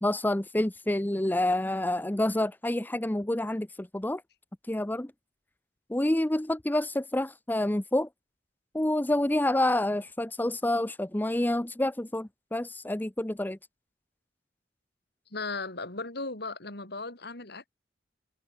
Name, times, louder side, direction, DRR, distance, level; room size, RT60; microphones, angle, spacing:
voice 1, 0.0-4.2 4.7-5.1 5.9-8.1 8.7-13.6, left 1 dB, 10° left, 0.6 m, -28 dB
voice 2, 15.3-17.6, left 3 dB, 65° left, 4.3 m, -36 dB
head